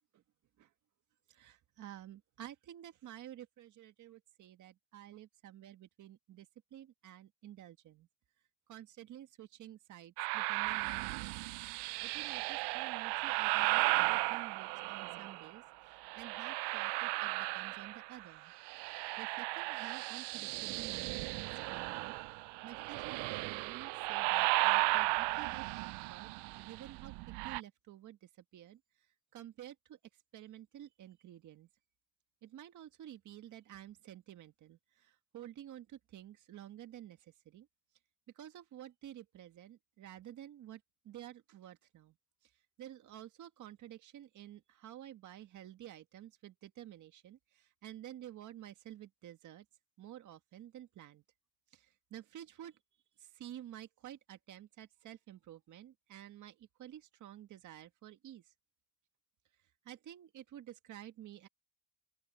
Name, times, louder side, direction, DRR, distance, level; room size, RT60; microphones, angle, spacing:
voice 1, 1.3-8.1 8.7-11.3 12.0-18.5 19.2-27.1 27.4-28.8 29.3-30.0 30.3-31.7 32.4-37.7 38.4-42.2 42.8-49.7 50.0-51.2 51.7-52.8 53.2-58.4 59.9-61.5, right 12 dB, 50° right, 1.8 m, -51 dB
sound 1, 10.2-15.5 16.0-18.3 18.5-27.6, right 25 dB, 80° right, 0.5 m, -35 dB
open air
cardioid pair, 140°, 39 cm